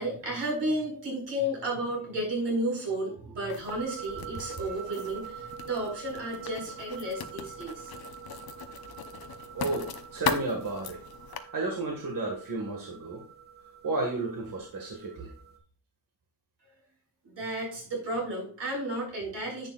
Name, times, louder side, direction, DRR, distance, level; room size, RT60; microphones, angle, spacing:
voice 1, 0.0-7.9 17.2-19.7, right 1 dB, 85° right, 0 dB, 5.1 m, -32 dB
Writing, 3.5-11.4, left 7 dB, 60° left, 0.8 m, -39 dB
sound 1, 3.7-15.6, right 8 dB, 25° right, 1.9 m, -45 dB
voice 2, 9.5-11.0 11.5-13.2 13.8-15.3, right 3 dB, 50° right, 1 dB, 1.8 m, -32 dB
10.5 x 8.9 x 2.4 m, 0.42 s
wide cardioid pair, 180°, 42 cm